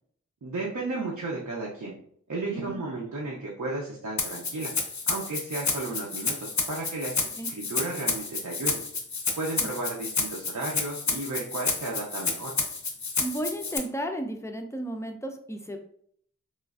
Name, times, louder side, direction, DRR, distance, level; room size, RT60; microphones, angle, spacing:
voice 1, 0.4-1.9 2.3-4.7 5.1-8.8 9.3-12.6, right 2 dB, 70° right, -3 dB, 0.6 m, -33 dB
Rattle (instrument), 4.2-13.8, left 4 dB, 70° left, 0.5 m, -30 dB
voice 2, 13.2-15.8, right 1 dB, 10° left, 5 dB, 0.4 m, -33 dB
3.1 x 2.4 x 2.4 m, 0.64 s
wide cardioid pair, 45°, 31 cm